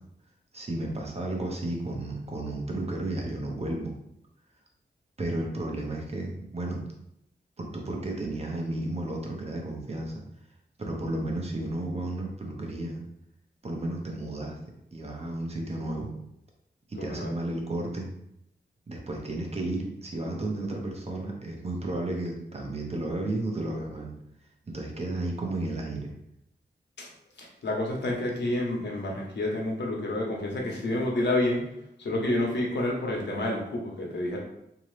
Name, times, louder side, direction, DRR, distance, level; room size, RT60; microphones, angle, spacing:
voice 1, 0.5-3.9 5.2-6.8 7.6-10.2 10.8-13.0 13.6-14.5 14.9-16.1 16.9-18.1 18.9-24.1 24.7-26.1, right 2 dB, 35° right, 0 dB, 0.7 m, -33 dB
voice 2, 17.0-17.4 27.0-27.1 27.4-31.6 32.0-34.4, left 1 dB, 80° left, -1 dB, 1.0 m, -29 dB
3.7 x 2.8 x 3.2 m, 0.78 s
wide cardioid pair, 150°, 18 cm